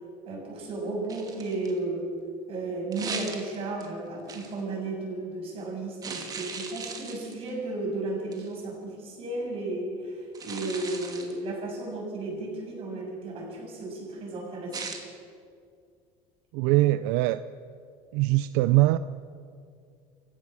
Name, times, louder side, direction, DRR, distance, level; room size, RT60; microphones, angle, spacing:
voice 1, 0.3-2.1 2.5-15.0, right 2 dB, 45° right, -1 dB, 7.3 m, -34 dB
sound 1, 1.1-1.8 2.9-3.9 4.3-4.6 6.0-7.5 8.3-8.5 10.3-11.4 14.7-15.0, right 5 dB, 30° right, 2.5 m, -38 dB
voice 2, 16.5-17.4 18.1-19.0, right 18 dB, 85° right, 14 dB, 0.5 m, -22 dB
28.0 x 16.0 x 6.2 m, 2.3 s
cardioid pair, 140°, 13 cm